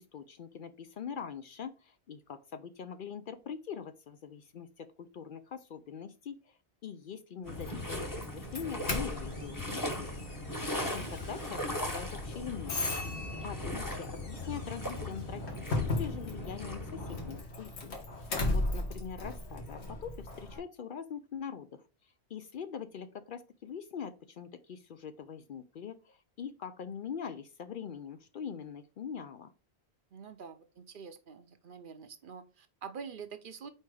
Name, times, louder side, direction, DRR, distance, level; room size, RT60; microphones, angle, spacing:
voice 1, 0.0-4.9 5.1-8.1 8.3-10.1 10.7-13.0 13.4-21.8 22.3-29.5, left 7 dB, 60° left, 11 dB, 0.6 m, -43 dB
Doorbell, 7.4-20.6, left 2 dB, 75° left, 1.7 m, -38 dB
sound 1, 7.5-17.4, left 1 dB, 20° left, 1.0 m, -39 dB
voice 2, 30.1-33.7, right 6 dB, 55° right, 10 dB, 0.8 m, -46 dB
4.7 x 4.5 x 4.7 m, 0.32 s
omnidirectional pair, 1.1 m